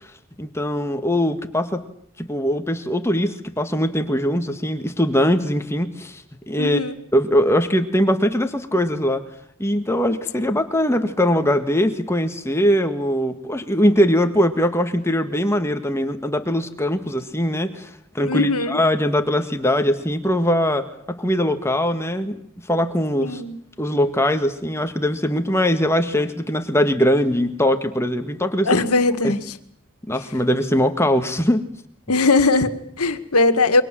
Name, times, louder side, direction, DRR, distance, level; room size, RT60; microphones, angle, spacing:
voice 1, 0.4-1.8 2.2-6.8 7.1-9.3 9.6-17.9 18.2-22.4 22.7-23.4 23.8-28.8 30.1-31.6, equal, 10° left, 8 dB, 1.7 m, -21 dB
voice 2, 6.6-6.9 10.1-10.4 18.2-18.8 23.2-23.6 28.7-29.4 32.1-33.8, left 3 dB, 90° left, 9 dB, 2.0 m, -20 dB
29.0 x 24.0 x 7.7 m, 0.64 s
head